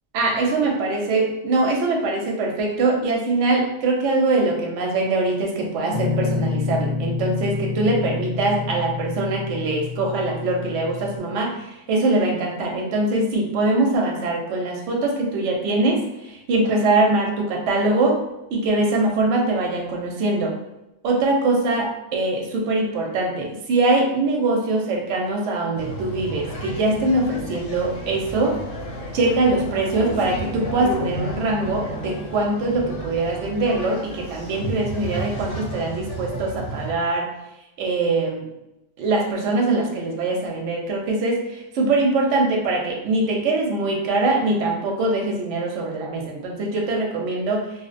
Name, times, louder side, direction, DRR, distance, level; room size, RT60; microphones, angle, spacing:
voice 1, 0.1-18.2 18.5-20.5 21.0-28.6 29.1-37.3 37.8-38.5 39.0-47.7, right 2 dB, 70° right, 0 dB, 0.8 m, -22 dB
Guitar, 5.9-11.2, left 4 dB, 45° left, 0.4 m, -28 dB
sound 1, 25.7-36.9, right 1 dB, 70° left, 0.9 m, -32 dB
2.7 x 2.1 x 2.4 m, 0.90 s
omnidirectional pair, 1.4 m